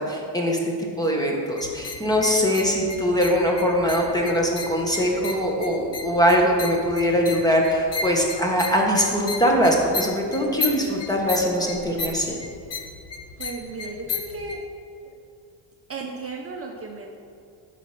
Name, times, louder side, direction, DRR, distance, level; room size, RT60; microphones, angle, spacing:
voice 1, 0.0-12.4, equal, 10° left, -1 dB, 1.3 m, -22 dB
sound 1, 1.6-14.6, left 4 dB, 35° left, 0.8 m, -35 dB
voice 2, 13.4-14.6 15.0-15.1 15.9-17.1, right 3 dB, 35° right, 0 dB, 0.8 m, -35 dB
12.0 x 5.0 x 5.9 m, 2.5 s
cardioid pair, 150°, 41 cm